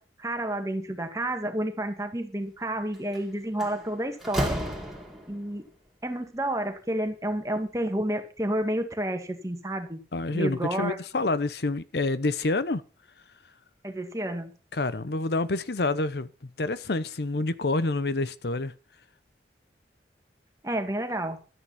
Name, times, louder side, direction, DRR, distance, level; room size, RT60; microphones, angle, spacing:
voice 1, 0.2-4.6 5.3-5.7 6.0-10.0 10.3-11.0 13.8-14.5 20.6-21.4, right 1 dB, 20° right, 2.0 m, -30 dB
Slam, 2.9-3.2 3.6-5.5, right 1 dB, ahead, 3.0 m, -32 dB
voice 2, 10.1-12.8 14.7-18.7, left 2 dB, 65° left, 0.8 m, -28 dB
12.5 x 9.7 x 5.7 m
head